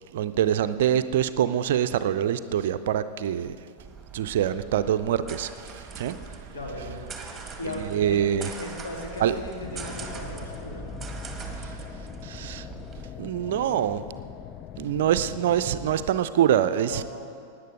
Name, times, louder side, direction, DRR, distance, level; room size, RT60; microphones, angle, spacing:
voice 1, 0.1-3.6 4.1-6.2 7.7-8.5 9.2-9.4 11.6-11.7 12.2-12.7 13.2-14.0 14.8-17.0, right 10 dB, 55° right, 12 dB, 0.4 m, -25 dB
sound 1, 3.8-13.0, right 5 dB, 10° right, 1.5 m, -41 dB
voice 2, 6.5-7.0 7.6-8.2 8.6-10.9 13.5-13.8 16.9-17.0, left 1 dB, 65° left, -2 dB, 2.9 m, -37 dB
sound 2, 9.6-16.1, left 11 dB, 35° left, 0.3 m, -41 dB
17.0 x 9.8 x 5.1 m, 2.4 s
figure-of-eight pair, 90°, 0 cm